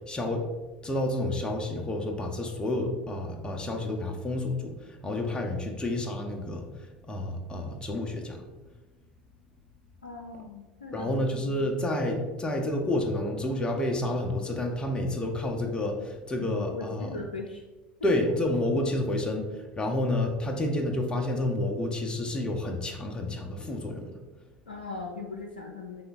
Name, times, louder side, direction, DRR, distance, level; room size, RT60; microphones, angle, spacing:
voice 1, 0.1-0.4 0.8-4.8 5.0-8.4 10.9-17.2 18.0-24.1, left 1 dB, 20° left, 1 dB, 0.8 m, -29 dB
voice 2, 10.0-11.1 16.4-17.6 18.0-18.1 24.7-26.0, left 3 dB, 90° left, 1 dB, 0.5 m, -39 dB
3.8 x 3.3 x 4.0 m, 1.2 s
hypercardioid pair, 75°, 5 cm